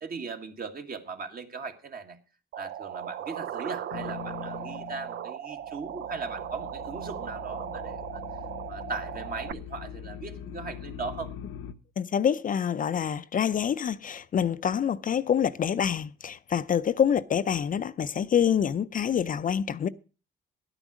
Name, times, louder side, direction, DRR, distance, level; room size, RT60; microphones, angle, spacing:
voice 1, 0.0-2.2 2.6-8.2 8.6-11.3, right 4 dB, 50° right, 1.8 m, -38 dB
sound 1, 2.5-9.5, right 10 dB, 65° right, 0.6 m, -38 dB
sound 2, 3.9-5.3 5.6-11.7, left 8 dB, 85° left, 0.8 m, -42 dB
voice 2, 12.0-19.9, left 8 dB, 45° left, 0.5 m, -26 dB
11.0 x 9.0 x 6.2 m
cardioid pair, 90°, 20 cm